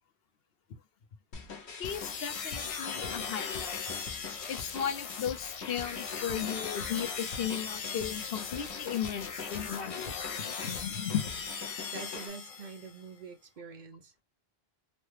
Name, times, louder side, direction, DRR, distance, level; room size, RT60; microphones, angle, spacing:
sound 1, 1.3-12.3, left 4 dB, 90° left, 1.1 m, -44 dB
voice 1, 1.8-3.8 4.5-11.2, left 9 dB, 70° left, 0.8 m, -36 dB
sound 2, 1.8-13.0, left 6 dB, 50° left, 0.4 m, -39 dB
voice 2, 11.7-14.2, right 5 dB, 55° right, 0.6 m, -46 dB
3.1 x 2.2 x 3.1 m
omnidirectional pair, 1.1 m